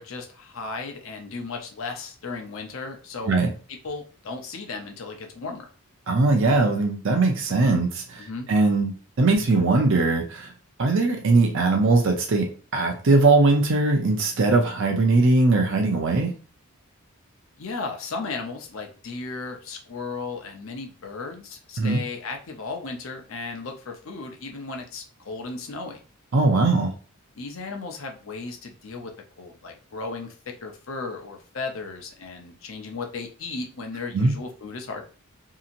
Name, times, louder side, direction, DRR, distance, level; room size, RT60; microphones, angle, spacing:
voice 1, 0.0-3.3 3.8-5.7 8.2-8.5 17.6-26.0 27.4-29.1 29.4-30.3 30.6-35.0, left 3 dB, 60° left, 3 dB, 0.6 m, -35 dB
voice 2, 6.1-10.5 10.8-16.3 21.8-22.0 26.3-26.9 34.1-34.3, right 3 dB, 55° right, 2 dB, 0.5 m, -20 dB
2.8 x 2.7 x 2.5 m, 0.37 s
head